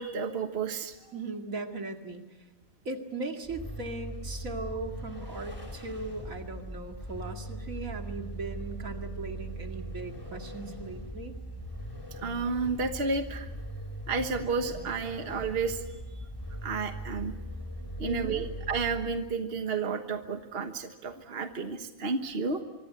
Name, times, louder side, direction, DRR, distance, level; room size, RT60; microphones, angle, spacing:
voice 1, 0.0-0.9 12.1-13.5 14.1-16.2 16.6-17.3 18.0-22.6, right 4 dB, 45° right, 7 dB, 1.6 m, -32 dB
voice 2, 1.1-2.4 2.8-11.3 18.0-18.4, right 3 dB, 75° right, 4 dB, 2.6 m, -38 dB
Vehicle, 3.4-19.4, right 1 dB, 15° left, 3.5 m, -40 dB
25.5 x 24.0 x 8.2 m, 1.0 s
omnidirectional pair, 1.4 m